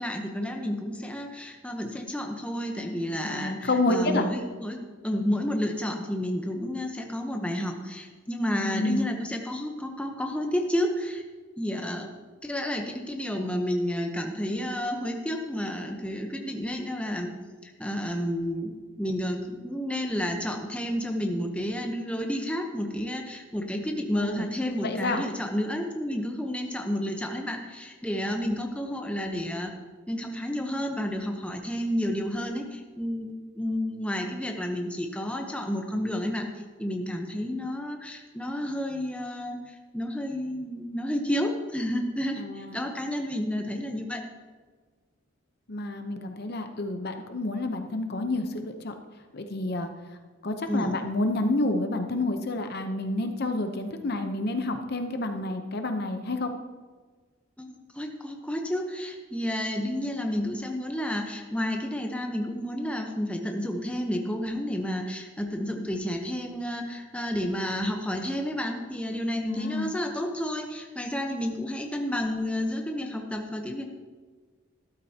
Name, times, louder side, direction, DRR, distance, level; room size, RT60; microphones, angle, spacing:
voice 1, 0.0-11.2 11.6-12.1 12.4-17.3 17.6-29.7 30.1-36.5 36.8-44.2 50.7-51.0 57.6-73.9, equal, 5° left, 2 dB, 0.8 m, -31 dB
voice 2, 3.2-4.3 8.6-9.1 24.1-24.5 24.8-25.3 42.4-42.9 45.7-48.9 49.3-49.9 50.4-56.5 69.4-69.9, left 2 dB, 50° left, 6 dB, 0.7 m, -29 dB
13.0 x 12.0 x 2.8 m, 1.4 s
head